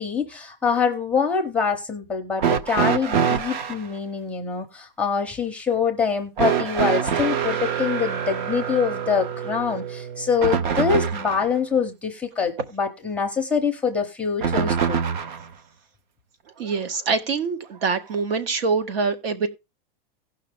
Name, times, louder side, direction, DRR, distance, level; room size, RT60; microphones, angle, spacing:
voice 1, 0.0-15.0, left 6 dB, 5° left, 0.6 m, -25 dB
sound 1, 2.4-3.8 6.4-11.5 14.4-15.5 16.7-16.8 17.9-18.0, right 7 dB, 50° right, 0.9 m, -25 dB
voice 2, 16.6-19.5, right 4 dB, 70° right, 1.9 m, -24 dB
17.0 x 5.8 x 3.5 m
supercardioid pair, 170°, 30 cm